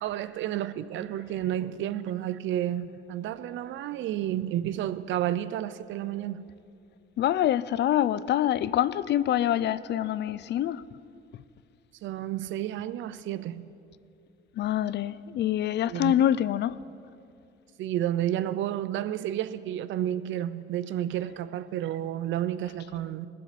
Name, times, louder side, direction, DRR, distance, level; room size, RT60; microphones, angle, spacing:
voice 1, 0.0-6.4 12.0-13.7 15.9-16.2 17.8-23.3, right 12 dB, 70° right, 0.4 m, -31 dB
voice 2, 7.2-10.8 14.6-16.8, left 11 dB, 60° left, 0.4 m, -25 dB
20.0 x 7.5 x 4.1 m
cardioid pair, 90°, 20 cm